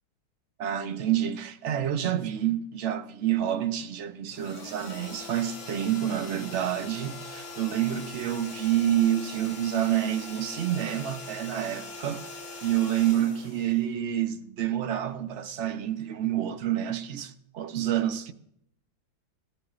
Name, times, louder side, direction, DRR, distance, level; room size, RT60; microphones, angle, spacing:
voice 1, 0.6-12.2 12.6-18.3, right 11 dB, 55° right, 0.8 m, -28 dB
sound 1, 4.3-14.3, left 3 dB, 70° left, 3.1 m, -42 dB
19.5 x 14.0 x 2.5 m
omnidirectional pair, 2.1 m